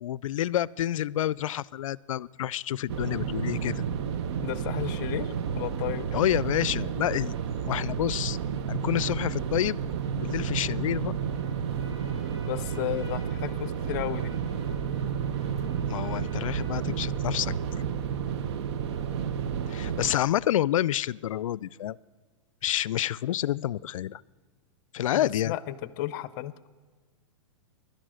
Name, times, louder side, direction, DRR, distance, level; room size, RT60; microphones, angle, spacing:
voice 1, 0.0-3.8 6.1-7.3 7.6-8.4 8.7-9.8 10.2-11.1 15.9-17.5 19.7-22.0 22.6-24.2 24.9-25.6, left 12 dB, 80° left, 23 dB, 0.4 m, -28 dB
sound 1, 2.9-20.1, right 7 dB, 55° right, 0.7 m, -31 dB
voice 2, 4.4-6.1 12.5-14.4 25.1-26.7, left 14 dB, 40° left, 17 dB, 0.6 m, -33 dB
Trumpet, 11.1-17.6, right 1 dB, 20° right, 3.0 m, -53 dB
16.5 x 12.0 x 6.3 m, 1.5 s
hypercardioid pair, 145°, 17 cm